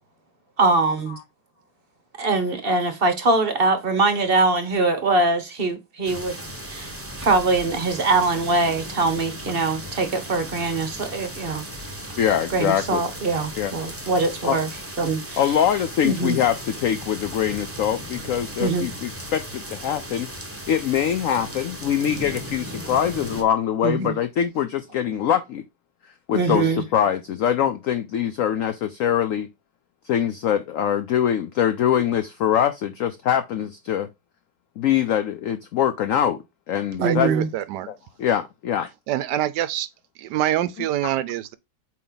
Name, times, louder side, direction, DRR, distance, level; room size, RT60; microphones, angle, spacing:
voice 1, 0.6-1.2 2.2-6.4 6.7-11.6 12.5-14.7 15.0-15.4 16.0-16.4 18.6-18.9 23.8-24.2 26.3-26.8 37.0-37.5, right 3 dB, 40° right, 0.9 m, -22 dB
sound 1, 6.0-23.4, equal, 10° right, 0.8 m, -36 dB
voice 2, 12.2-13.0 13.6-13.7 14.4-14.6 15.4-20.3 20.7-25.6 26.3-29.5 30.0-34.1 34.8-37.3 37.9-38.9 41.0-41.1, left 9 dB, 85° left, 0.7 m, -23 dB
voice 3, 37.0-37.9 39.1-39.9 40.2-41.5, right 12 dB, 75° right, 1.1 m, -25 dB
8.4 x 3.1 x 3.9 m
omnidirectional pair, 2.0 m